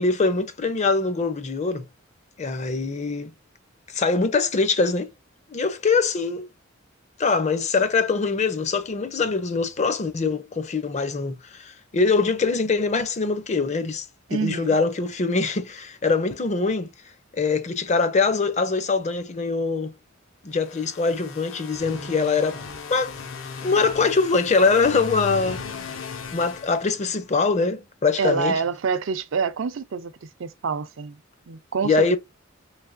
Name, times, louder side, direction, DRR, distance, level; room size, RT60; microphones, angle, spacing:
voice 1, 0.0-1.9 2.4-3.3 3.9-5.1 5.5-6.5 7.2-14.1 14.3-16.9 17.3-19.9 20.4-22.6 22.9-23.2 23.6-25.6 26.3-28.6 31.8-32.2, left 4 dB, 35° left, 0.6 m, -23 dB
voice 2, 14.3-14.8 28.2-31.2 31.5-32.2, right 5 dB, 70° right, 0.5 m, -27 dB
sound 1, 20.5-27.4, left 5 dB, 75° left, 0.7 m, -37 dB
3.3 x 2.9 x 2.5 m
head